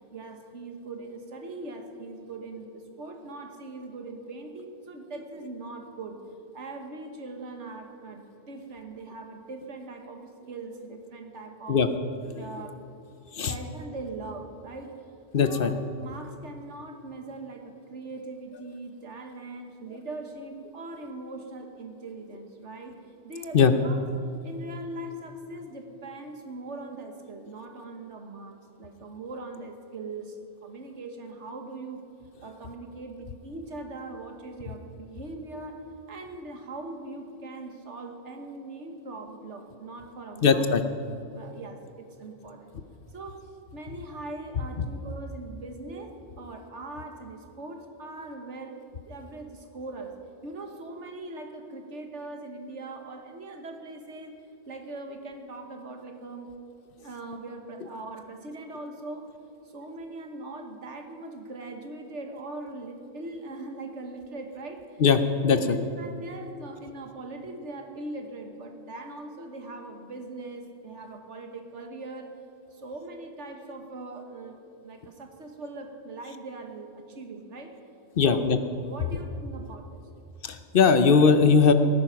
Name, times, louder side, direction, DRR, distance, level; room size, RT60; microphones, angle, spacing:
voice 1, 0.1-6.2 6.5-11.8 12.3-12.8 13.5-15.0 15.4-15.7 16.0-23.0 23.2-24.0 24.4-32.0 32.4-41.0 41.3-42.7 43.1-48.8 49.1-50.2 50.4-54.4 54.7-56.5 57.0-59.3 59.7-65.0 65.5-72.3 72.7-77.7 78.2-78.5 78.9-80.0, right 2 dB, 85° right, 5 dB, 1.7 m, -41 dB
voice 2, 15.3-15.7 23.5-23.7 40.4-40.8 65.0-65.8 78.2-78.6 80.4-81.7, left 5 dB, 55° left, 9 dB, 0.9 m, -20 dB
18.5 x 9.7 x 5.8 m, 2.6 s
omnidirectional pair, 1.2 m